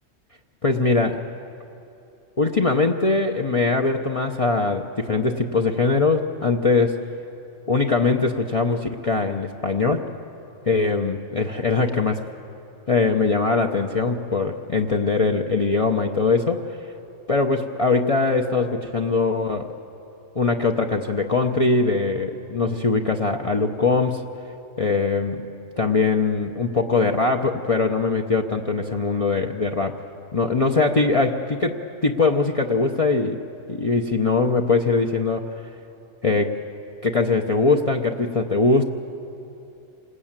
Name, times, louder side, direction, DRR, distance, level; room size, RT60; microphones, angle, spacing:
voice 1, 0.6-1.2 2.4-7.0 7.7-10.1 10.7-12.2 12.9-16.6 17.3-19.7 20.3-24.2 24.8-25.4 25.8-30.0 30.3-33.4 33.7-35.4 36.2-36.6 37.0-38.8, left 3 dB, 30° left, 1 dB, 0.8 m, -21 dB
28.0 x 19.5 x 8.9 m, 2.8 s
omnidirectional pair, 1.3 m